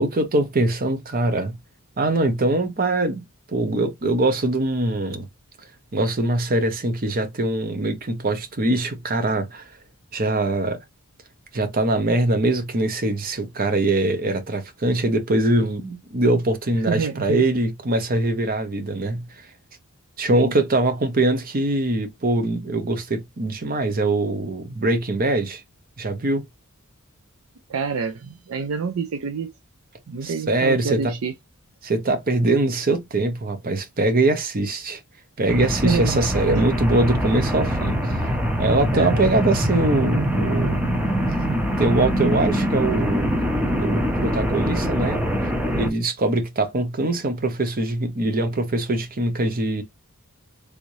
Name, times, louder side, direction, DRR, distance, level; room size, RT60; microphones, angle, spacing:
voice 1, 0.0-1.6 2.0-3.2 3.5-5.3 5.9-9.7 10.1-10.8 11.5-19.4 20.2-25.6 26.0-26.4 30.2-31.1 31.8-35.0 35.4-38.2 38.6-40.9 41.8-43.3 43.8-45.2 45.8-49.8, right 2 dB, 40° right, 0.8 m, -22 dB
voice 2, 16.9-17.4 20.3-20.6 27.7-29.5 30.1-31.3 35.8-36.6 38.9-39.2, right 5 dB, 65° right, 0.4 m, -27 dB
sound 1, 35.5-45.9, equal, 5° right, 0.6 m, -23 dB
3.5 x 2.6 x 3.0 m
head